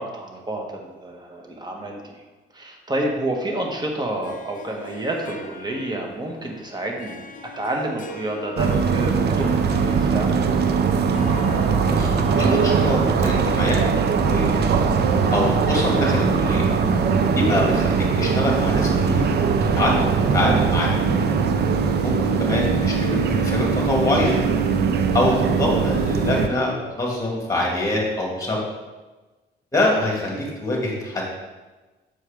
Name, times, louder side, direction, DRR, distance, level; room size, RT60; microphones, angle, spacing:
voice 1, 0.0-2.0 2.5-7.2 7.6-9.5 9.7-10.4 25.3-25.4, right 1 dB, 20° right, 1 dB, 1.2 m, -29 dB
Harp, 4.2-15.3, left 2 dB, 40° left, 0.6 m, -39 dB
sound 1, 8.6-26.5, right 5 dB, 55° right, 0.5 m, -20 dB
voice 2, 11.9-14.5 15.3-16.7 17.3-19.3 19.6-20.9 22.0-24.4 25.1-28.6 29.7-31.3, left 1 dB, 15° left, -2 dB, 2.0 m, -24 dB
6.6 x 4.5 x 3.5 m, 1.2 s
cardioid pair, 90°, 20 cm